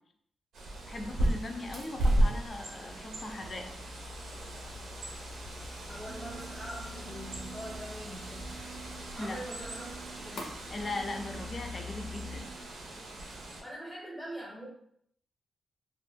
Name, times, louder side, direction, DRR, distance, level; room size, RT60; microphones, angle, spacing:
Bird, 0.5-13.6, right 1 dB, 85° right, 0.6 m, -35 dB
voice 1, 0.9-3.7 9.2-9.4 10.3-12.5, left 2 dB, 35° left, 4 dB, 0.4 m, -39 dB
sound 1, 3.2-12.4, left 3 dB, 85° left, 0.6 m, -47 dB
voice 2, 5.9-8.6 9.1-10.6 13.6-14.7, right 1 dB, 10° left, -6 dB, 0.7 m, -43 dB
sound 2, 6.1-12.6, right 6 dB, 40° right, 0.4 m, -51 dB
2.4 x 2.1 x 3.3 m, 0.69 s
wide cardioid pair, 125°, 0 cm